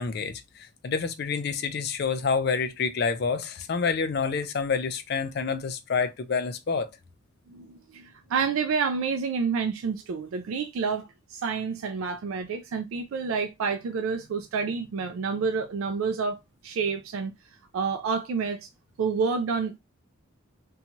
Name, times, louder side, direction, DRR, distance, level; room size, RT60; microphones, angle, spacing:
voice 1, 0.0-6.9, left 5 dB, 50° left, 0.4 m, -28 dB
voice 2, 7.5-17.3 17.7-18.7 19.0-19.8, right 5 dB, 75° right, 0.3 m, -29 dB
2.6 x 2.2 x 2.8 m
head